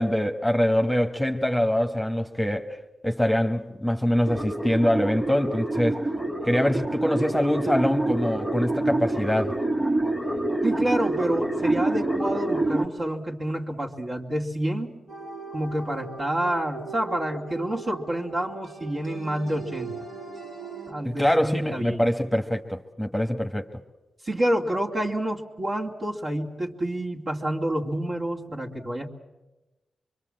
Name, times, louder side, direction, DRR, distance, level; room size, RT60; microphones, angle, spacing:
voice 1, 0.0-2.8 3.0-6.0 6.5-9.6 21.0-23.7, equal, ahead, 1.4 m, -24 dB
sound 1, 4.3-12.9, right 2 dB, 15° right, 2.3 m, -27 dB
voice 2, 10.6-14.9 15.5-20.0 20.9-22.1 24.2-29.1, right 1 dB, 55° right, 2.7 m, -28 dB
sound 2, 15.1-20.9, right 4 dB, 80° right, 4.5 m, -40 dB
24.5 x 23.0 x 7.8 m
supercardioid pair, 45°, 0 cm